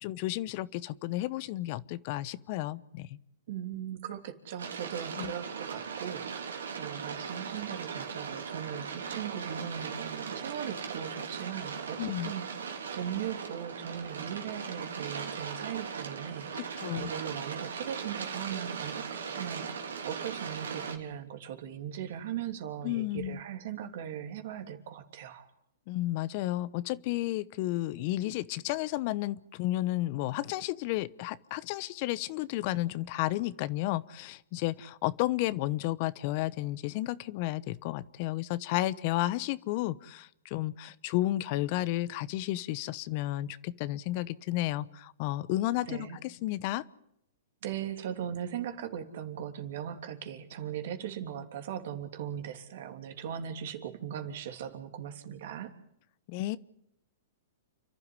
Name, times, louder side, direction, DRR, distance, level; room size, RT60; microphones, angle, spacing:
voice 1, 0.0-3.2 5.2-5.3 12.0-12.3 16.5-17.1 22.8-23.4 25.9-46.8 56.3-56.6, left 16 dB, 45° left, 18 dB, 0.9 m, -32 dB
voice 2, 3.5-12.5 12.9-25.5 45.9-46.2 47.6-55.7, right 9 dB, 60° right, 7 dB, 3.1 m, -39 dB
sound 1, 4.6-21.0, right 6 dB, 85° right, 3.4 m, -39 dB
29.5 x 12.0 x 9.8 m, 0.76 s
hypercardioid pair, 130°, 0 cm